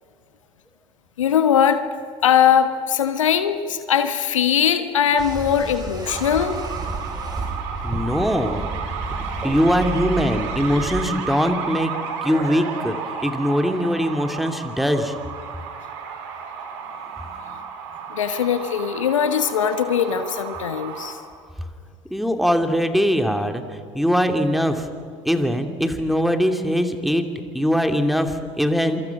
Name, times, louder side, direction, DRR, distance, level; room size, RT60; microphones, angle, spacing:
voice 1, 1.2-1.8 2.2-6.6 18.1-21.2, left 8 dB, 80° left, 10 dB, 1.3 m, -20 dB
sound 1, 5.2-11.1, right 3 dB, 25° right, 5.5 m, -31 dB
sound 2, 6.0-21.1, right 6 dB, 70° right, 4.3 m, -33 dB
voice 2, 7.8-8.7 9.4-11.9 12.2-13.0 13.2-15.1 22.1-24.9 25.2-27.3 27.5-29.1, equal, ahead, 6 dB, 2.7 m, -21 dB
27.0 x 25.5 x 6.1 m, 2.4 s
hypercardioid pair, 65°, 16 cm